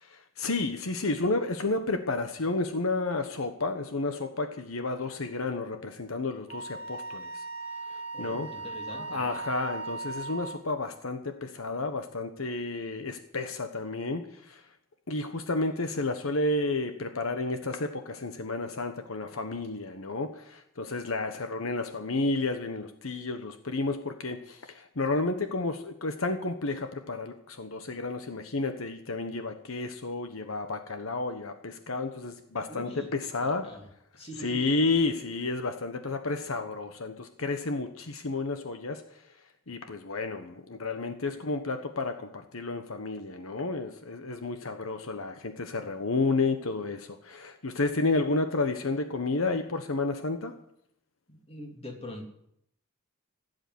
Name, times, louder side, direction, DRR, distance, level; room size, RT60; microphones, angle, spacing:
voice 1, 0.0-7.4 7.9-8.5 8.9-14.6 15.1-33.6 34.4-39.0 39.7-50.5, left 3 dB, 75° left, 7 dB, 1.2 m, -31 dB
Wind instrument woodwind instrument, 6.5-10.7, right 3 dB, 25° right, 1.9 m, -38 dB
voice 2, 8.1-9.2 32.7-33.1 33.4-33.9 34.2-34.7 51.3-52.3, left 1 dB, 30° left, 1 dB, 3.0 m, -43 dB
16.0 x 8.0 x 9.5 m, 0.74 s
head